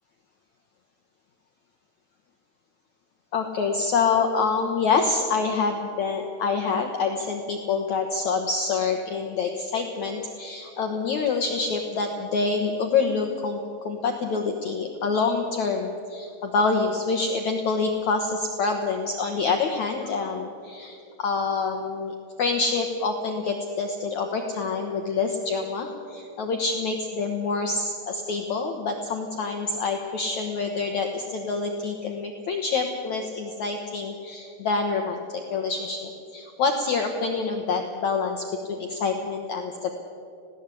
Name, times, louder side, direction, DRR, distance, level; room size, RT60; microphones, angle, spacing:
voice 1, 3.3-13.6 13.9-39.9, left 4 dB, 70° left, 4 dB, 1.8 m, -26 dB
20.5 x 17.0 x 8.4 m, 2.6 s
omnidirectional pair, 5.0 m